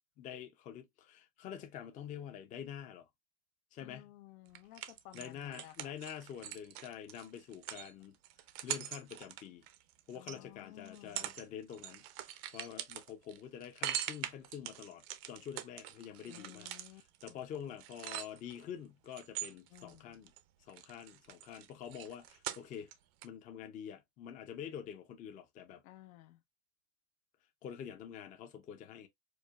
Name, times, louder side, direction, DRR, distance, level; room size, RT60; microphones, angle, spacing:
voice 1, 0.2-3.1 3.7-4.1 5.1-8.1 8.6-9.7 10.1-20.3 20.7-22.9 23.2-25.8 27.6-29.1, left 9 dB, 20° left, 0.4 m, -47 dB
voice 2, 3.8-6.0 10.1-11.3 16.3-17.0 17.3-17.4 19.7-20.2 25.8-26.4, left 15 dB, 80° left, 0.7 m, -55 dB
sound 1, 4.5-10.4 10.9-11.4 11.7-18.6 19.1-20.4 20.7-22.9 23.2-23.3, right 12 dB, 50° right, 0.5 m, -43 dB
4.7 x 2.5 x 2.3 m
supercardioid pair, 145°, 42 cm